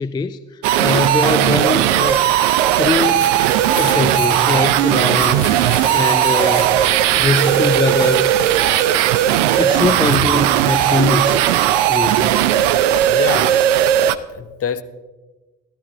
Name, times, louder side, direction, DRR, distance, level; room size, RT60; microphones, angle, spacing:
voice 1, 0.0-2.4 2.7-3.4 3.8-5.5 5.9-6.8 7.2-8.3 9.6-11.5 11.9-12.4, left 3 dB, 10° left, 0.3 m, -22 dB
sound 1, 0.6-14.2, right 12 dB, 70° right, 0.6 m, -16 dB
sound 2, 2.0-10.2, left 8 dB, 60° left, 1.5 m, -35 dB
sound 3, 3.3-12.7, right 3 dB, 25° right, 1.8 m, -37 dB
voice 2, 13.1-13.6 14.3-14.8, left 8 dB, 40° left, 0.8 m, -25 dB
14.0 x 12.5 x 4.0 m
figure-of-eight pair, 45°, 38 cm